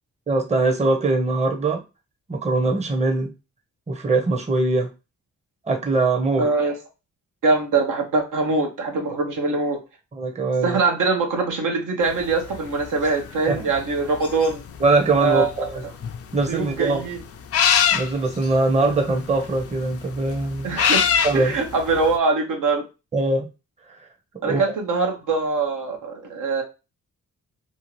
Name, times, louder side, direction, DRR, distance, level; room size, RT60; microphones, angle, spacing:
voice 1, 0.3-1.8 2.3-3.3 3.9-4.9 5.7-6.5 10.1-10.8 13.5-13.7 14.8-15.8 16.3-17.0 17.9-20.8 21.2-21.5 23.1-23.5 24.4-24.6, right 3 dB, 20° right, 3 dB, 0.7 m, -22 dB
voice 2, 6.4-6.7 7.4-9.8 10.6-14.6 15.2-15.7 16.5-17.2 18.8-19.0 20.6-21.1 21.3-22.8 24.4-26.6, right 3 dB, 75° right, 2 dB, 0.8 m, -23 dB
sound 1, 12.1-22.2, left 7 dB, 50° left, 0.4 m, -25 dB
2.7 x 2.4 x 2.9 m, 0.28 s
cardioid pair, 70°, 31 cm